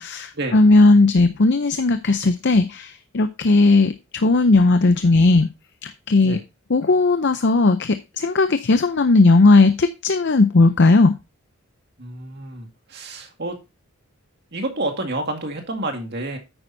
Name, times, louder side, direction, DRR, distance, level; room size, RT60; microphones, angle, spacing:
voice 1, 0.0-5.5 5.8-6.4 6.7-11.1, left 3 dB, 50° left, 0.6 m, -16 dB
voice 2, 12.0-13.5 14.5-16.4, right 2 dB, 50° right, 2.0 m, -29 dB
9.8 x 8.8 x 2.7 m
head